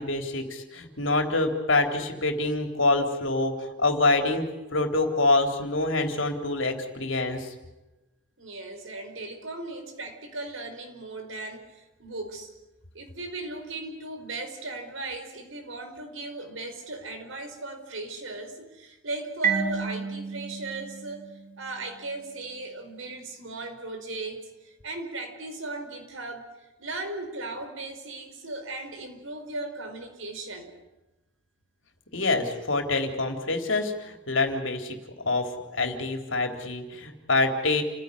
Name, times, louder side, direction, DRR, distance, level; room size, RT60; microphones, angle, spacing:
voice 1, 0.0-7.5 32.1-37.8, left 2 dB, 65° left, 4 dB, 3.8 m, -26 dB
voice 2, 8.4-12.5 12.9-21.3 21.6-30.7, right 2 dB, 70° right, 5 dB, 5.0 m, -37 dB
Marimba xylophone, 19.4-22.1, right 6 dB, 40° right, 2.9 m, -31 dB
29.5 x 16.0 x 9.9 m, 1.0 s
head